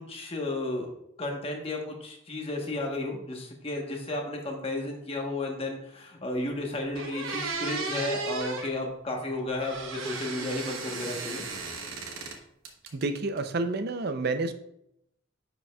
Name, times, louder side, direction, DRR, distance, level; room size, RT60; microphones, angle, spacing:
voice 1, 0.1-0.9 1.2-11.4, left 2 dB, 30° left, 0 dB, 1.1 m, -33 dB
sound 1, 6.5-6.6 6.9-8.7 9.6-12.4 12.7-13.4, right 3 dB, 80° right, 1.0 m, -35 dB
voice 2, 12.9-14.5, right 3 dB, 50° right, 9 dB, 0.5 m, -29 dB
9.7 x 5.2 x 2.3 m, 0.78 s
head